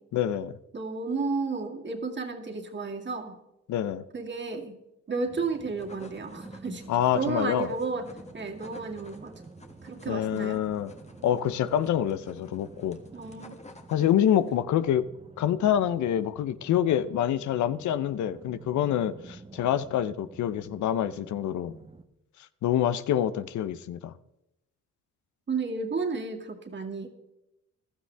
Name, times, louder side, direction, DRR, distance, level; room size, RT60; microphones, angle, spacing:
voice 1, 0.1-0.5 3.7-4.0 6.9-7.7 10.1-10.9 11.2-13.0 13.9-15.0 15.4-21.8 22.6-24.1, left 10 dB, 70° left, 0.7 m, -26 dB
voice 2, 0.7-3.4 4.1-4.8 5.1-6.8 7.1-8.1 8.3-9.3 9.8-10.6 13.1-13.6 25.5-27.1, right 4 dB, 40° right, 2.3 m, -32 dB
sound 1, 5.2-22.0, right 3 dB, 20° right, 1.0 m, -50 dB
sound 2, 5.5-14.6, left 2 dB, 20° left, 1.6 m, -52 dB
15.5 x 12.5 x 3.4 m
cardioid pair, 90°, 30 cm